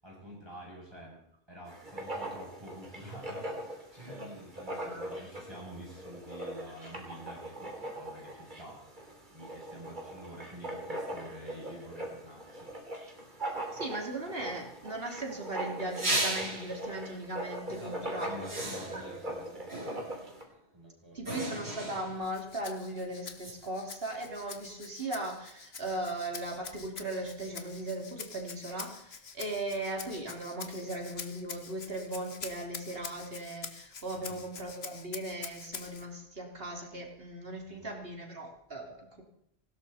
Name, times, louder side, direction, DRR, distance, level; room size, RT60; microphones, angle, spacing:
voice 1, 0.0-1.2 1.5-8.8 9.3-12.7 17.7-19.7 20.7-21.3 34.1-34.4 37.7-37.9, equal, 25° right, -3 dB, 7.6 m, -48 dB
Writing, 1.7-20.4, right 1 dB, 50° right, 3.1 m, -41 dB
voice 2, 4.7-5.1 13.7-18.6 18.9-19.4 21.1-39.2, right 1 dB, 65° right, 1 dB, 3.4 m, -38 dB
sound 1, 15.9-16.8 17.7-17.9 18.4-19.2 19.7-20.3 21.3-22.3 23.4-23.5, right 1 dB, 85° right, 3.7 m, -35 dB
Rattle (instrument), 22.2-36.1, left 5 dB, 80° left, 1.5 m, -46 dB
19.0 x 17.0 x 4.3 m, 0.76 s
omnidirectional pair, 1.1 m